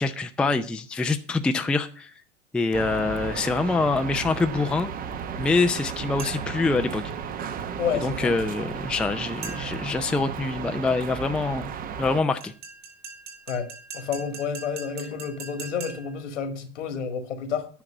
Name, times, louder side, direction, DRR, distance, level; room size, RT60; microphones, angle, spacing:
voice 1, 0.0-2.1 2.5-4.9 5.4-7.0 8.0-11.7 12.0-12.5, left 3 dB, 5° left, 0.5 m, -25 dB
sound 1, 2.7-12.2, right 7 dB, 25° right, 0.8 m, -34 dB
sound 2, 6.2-6.6 9.4-9.9 12.4-16.2, right 4 dB, 70° right, 3.3 m, -41 dB
voice 2, 7.8-8.3 13.5-13.7 13.9-17.7, left 6 dB, 70° left, 1.9 m, -30 dB
10.0 x 5.9 x 7.5 m
hypercardioid pair, 95°, 37 cm